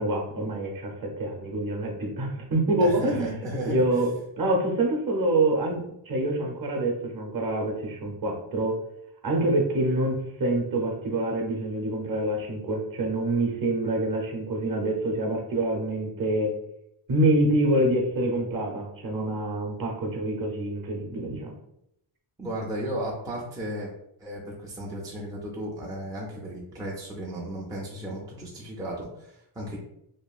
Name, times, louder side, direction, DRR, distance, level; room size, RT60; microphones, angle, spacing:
voice 1, 0.0-3.3 3.6-4.1 4.4-8.7 9.2-16.5 17.1-21.6, right 1 dB, 45° right, 0 dB, 0.8 m, -26 dB
voice 2, 2.8-3.8 22.4-23.9 24.2-29.8, right 1 dB, 10° right, -4 dB, 0.4 m, -34 dB
2.9 x 2.3 x 2.4 m, 0.79 s
wide cardioid pair, 130°, 48 cm